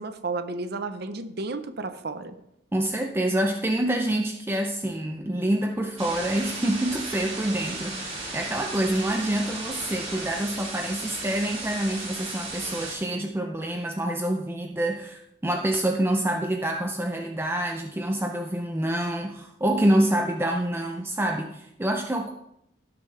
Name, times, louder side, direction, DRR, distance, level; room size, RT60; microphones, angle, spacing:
voice 1, 0.0-2.3, right 3 dB, 55° right, 9 dB, 0.8 m, -32 dB
voice 2, 2.7-22.3, right 1 dB, 10° right, 3 dB, 0.5 m, -27 dB
sound 1, 6.0-12.9, right 2 dB, 35° right, 3.9 m, -35 dB
17.5 x 6.2 x 3.3 m, 0.79 s
head